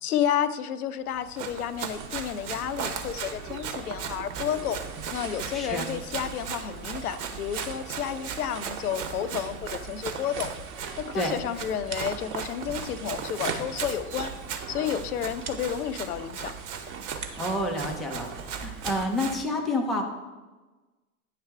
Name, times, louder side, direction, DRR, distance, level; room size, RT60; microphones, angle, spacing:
voice 1, 0.0-4.8 5.1-10.5 11.0-14.3 14.7-16.5, left 9 dB, 80° left, 13 dB, 0.6 m, -31 dB
sound 1, 1.1-19.1, right 5 dB, 30° right, 0.8 m, -41 dB
Run, 1.2-19.4, right 7 dB, 55° right, 1.0 m, -38 dB
voice 2, 5.5-5.9 11.1-11.3 17.4-18.3 18.5-20.0, left 1 dB, ahead, 0 dB, 0.3 m, -29 dB
sound 2, 10.0-10.9 11.2-12.6 13.1-16.3 16.7-17.6 17.9-19.2, right 6 dB, 75° right, 1.1 m, -45 dB
9.4 x 3.3 x 4.6 m, 1.2 s
hypercardioid pair, 100°, 44 cm